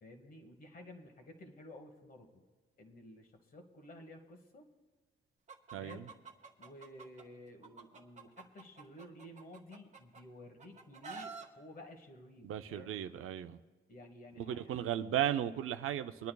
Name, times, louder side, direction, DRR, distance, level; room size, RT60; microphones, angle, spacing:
voice 1, 0.0-2.4 2.8-4.7 5.8-6.2 6.6-13.0 13.9-14.8, left 1 dB, 45° left, 5 dB, 1.4 m, -53 dB
Chicken rooster, 5.5-7.2 7.6-10.2 10.6-11.5, right 5 dB, 35° right, 0.9 m, -49 dB
voice 2, 5.7-6.1 12.4-13.6 14.4-16.3, right 11 dB, 85° right, 10 dB, 0.5 m, -35 dB
23.5 x 10.5 x 2.3 m, 1.3 s
wide cardioid pair, 160°, 21 cm